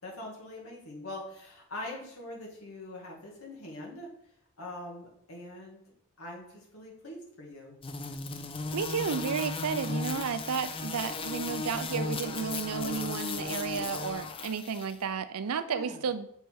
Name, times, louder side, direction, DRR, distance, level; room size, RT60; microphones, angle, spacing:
voice 1, 0.0-4.1 4.6-5.8 6.2-7.8 15.7-16.0, left 1 dB, 70° left, -2 dB, 2.1 m, -43 dB
sound 1, 7.8-14.9, left 3 dB, 25° left, 0.4 m, -36 dB
voice 2, 8.7-16.3, right 6 dB, 85° right, 12 dB, 0.5 m, -32 dB
6.6 x 4.5 x 4.7 m, 0.73 s
head